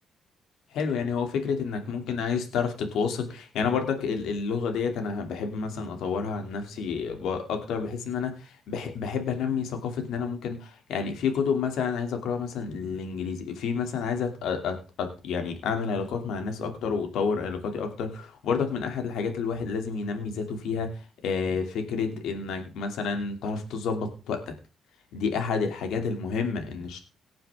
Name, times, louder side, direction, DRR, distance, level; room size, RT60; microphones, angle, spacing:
voice 1, 0.7-20.9 21.2-24.5 25.1-27.0, left 5 dB, 80° left, 5 dB, 2.8 m, -29 dB
18.5 x 7.5 x 3.6 m, 0.31 s
cardioid pair, 90°, 0 cm